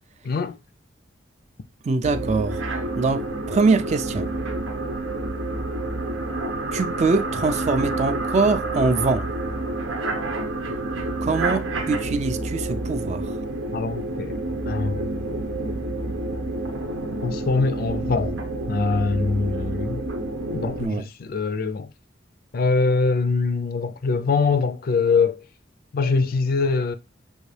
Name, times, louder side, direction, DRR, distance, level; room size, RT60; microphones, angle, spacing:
voice 1, 0.2-0.6 13.7-14.4 14.7-15.3 17.2-18.4 18.7-20.0 20.5-21.9 22.5-25.4 25.9-26.9, left 4 dB, 50° left, 0.4 m, -23 dB
voice 2, 1.8-2.6 3.0-4.3 6.7-9.3 11.2-13.3 20.8-21.0, right 3 dB, 35° right, 0.3 m, -23 dB
sound 1, 2.0-20.8, right 2 dB, 90° right, 0.8 m, -29 dB
6.2 x 2.6 x 3.2 m
head